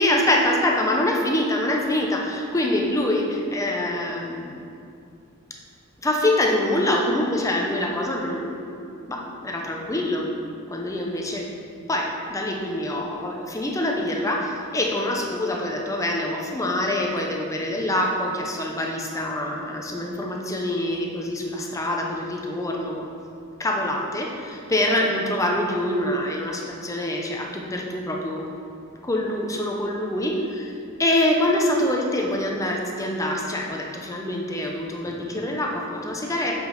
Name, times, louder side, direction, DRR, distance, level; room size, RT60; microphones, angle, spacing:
voice 1, 0.0-4.6 6.0-8.8 9.1-10.3 10.7-11.5 11.9-23.1 23.6-28.5 29.0-30.7 31.0-36.5, left 1 dB, 15° left, 0 dB, 0.7 m, -25 dB
7.6 x 5.2 x 3.8 m, 2.5 s
head